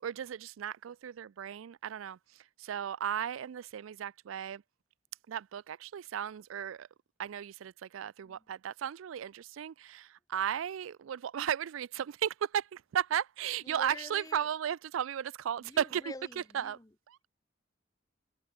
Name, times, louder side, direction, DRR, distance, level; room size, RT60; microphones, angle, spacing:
voice 1, 0.0-2.2 2.6-4.6 5.3-6.9 7.2-16.8 17.1-17.2, right 9 dB, 90° right, 0.4 m, -35 dB
voice 2, 13.6-14.5 15.6-16.9, left 2 dB, 20° left, 0.6 m, -47 dB
head